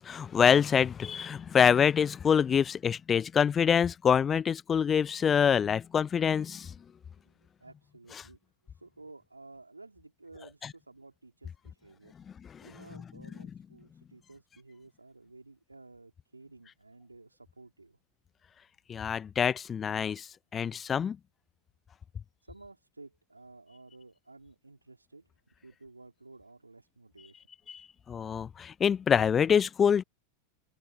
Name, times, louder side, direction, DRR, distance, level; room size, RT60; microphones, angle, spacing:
voice 1, 0.0-6.7 8.2-8.3 12.5-12.6 18.9-20.3 20.5-21.2 27.7-27.8 28.1-30.0, left 7 dB, 20° left, 0.7 m, -25 dB
voice 2, 7.6-8.4 8.7-12.1 12.6-18.0 22.4-25.3 25.6-27.4, right 3 dB, 80° right, 3.5 m, -53 dB
figure-of-eight pair, 90°, 0 cm